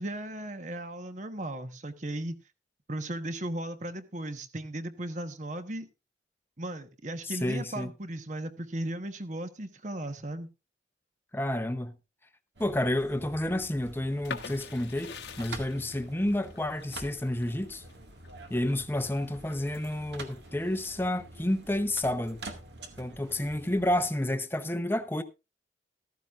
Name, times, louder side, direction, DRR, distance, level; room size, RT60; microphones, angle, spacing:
voice 1, 0.0-2.4 2.9-5.9 6.6-10.5, right 1 dB, 40° right, 1.2 m, -36 dB
voice 2, 7.2-7.9 11.3-12.0 12.6-17.8 18.5-22.4 23.0-25.2, left 1 dB, 10° left, 0.8 m, -30 dB
sound 1, 12.5-24.1, right 2 dB, 65° right, 1.9 m, -47 dB
sound 2, 14.2-19.9 20.3-21.2, left 5 dB, 65° left, 1.2 m, -44 dB
14.5 x 13.5 x 2.5 m
head